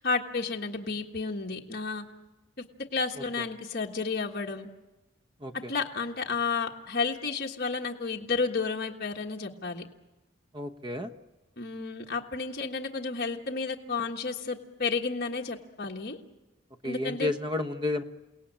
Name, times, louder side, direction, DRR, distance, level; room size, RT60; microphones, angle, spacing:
voice 1, 0.0-2.0 2.9-4.7 5.5-9.8 11.6-16.2 16.8-17.3, left 4 dB, 50° left, 0 dB, 1.6 m, -31 dB
voice 2, 5.4-5.7 10.5-11.1 16.8-18.0, left 2 dB, 25° right, 8 dB, 1.0 m, -31 dB
29.0 x 17.5 x 8.9 m, 1.1 s
head